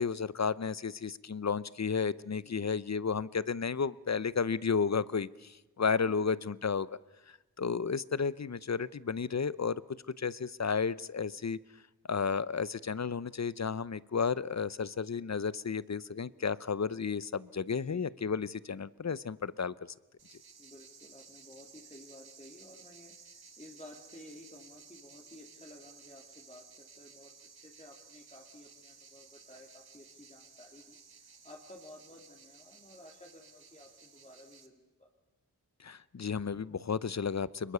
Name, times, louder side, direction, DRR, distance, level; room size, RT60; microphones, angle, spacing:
voice 1, 0.0-6.9 7.3-11.6 12.1-19.9 35.8-37.7, left 5 dB, 45° left, 19 dB, 0.7 m, -33 dB
voice 2, 17.7-18.1 20.6-27.3 27.6-35.1, left 1 dB, 20° left, 0 dB, 3.2 m, -54 dB
sound 1, 20.2-34.7, right 5 dB, 80° right, 1.8 m, -56 dB
23.5 x 21.5 x 6.9 m, 1.1 s
cardioid pair, 50°, 37 cm